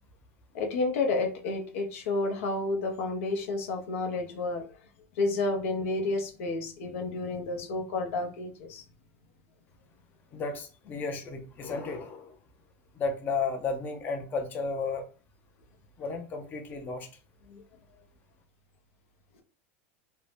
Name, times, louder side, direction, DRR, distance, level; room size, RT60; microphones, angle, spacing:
voice 1, 0.5-4.6 5.2-8.8 17.5-17.6, left 3 dB, 80° left, 0.7 m, -30 dB
voice 2, 10.3-12.4 13.0-15.0 16.0-17.1, left 4 dB, 25° left, 0.5 m, -33 dB
2.6 x 2.1 x 3.2 m
supercardioid pair, 145°, 7 cm